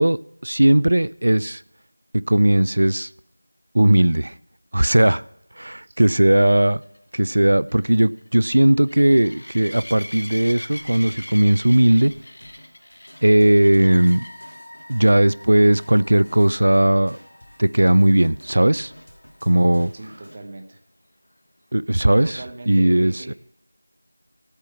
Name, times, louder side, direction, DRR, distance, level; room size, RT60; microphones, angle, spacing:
voice 1, 0.0-1.6 2.3-3.1 3.7-4.3 4.7-5.2 5.6-6.8 7.1-12.1 13.2-14.2 14.9-17.2 17.6-18.9 19.4-19.9 21.7-22.4 22.7-23.3, right 1 dB, 60° right, 0.4 m, -17 dB
sound 1, 6.5-14.5 15.0-15.3 15.6-15.7 16.1-16.2 19.8-19.9, left 1 dB, 60° left, 1.3 m, -40 dB
sound 2, 9.7-20.4, equal, 85° left, 3.0 m, -51 dB
sound 3, 13.8-20.1, left 1 dB, 30° left, 1.9 m, -48 dB
voice 2, 19.9-20.8 22.2-23.3, right 2 dB, 25° right, 1.0 m, -39 dB
13.5 x 8.3 x 5.7 m
figure-of-eight pair, 175°, 0 cm